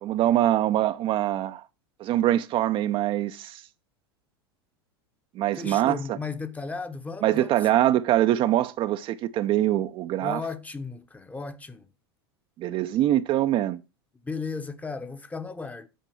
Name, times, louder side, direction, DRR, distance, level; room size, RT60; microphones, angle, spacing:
voice 1, 0.0-1.6 2.0-3.6 5.4-6.2 7.2-10.4 12.6-13.8, right 13 dB, 40° right, 0.5 m, -24 dB
voice 2, 5.6-7.8 10.2-11.9 14.2-15.9, left 4 dB, 10° left, 0.9 m, -35 dB
9.2 x 4.5 x 5.8 m
hypercardioid pair, 85°, 13 cm